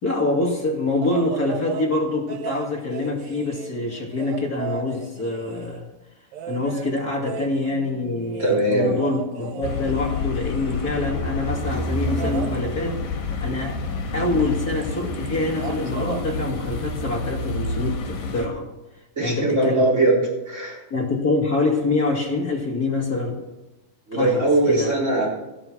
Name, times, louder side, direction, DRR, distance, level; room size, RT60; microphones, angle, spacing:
voice 1, 0.0-5.9 6.5-13.0 13.4-13.8 14.1-18.7 19.2-19.9 20.9-23.4 24.1-24.9, left 2 dB, 30° left, -1 dB, 2.2 m, -25 dB
sound 1, 1.0-1.9 2.3-5.8 6.3-11.2 12.1-12.6 14.4-14.5 14.8-15.3 15.5-16.3 17.6-17.7, right 8 dB, 65° right, 2.0 m, -35 dB
voice 2, 8.4-9.0 19.2-20.2 20.5-20.8 24.1-25.3, right 2 dB, 20° right, -3 dB, 4.2 m, -20 dB
sound 2, 9.6-18.5, left 3 dB, 80° left, 3.6 m, -28 dB
14.0 x 12.5 x 6.0 m, 0.99 s
omnidirectional pair, 4.0 m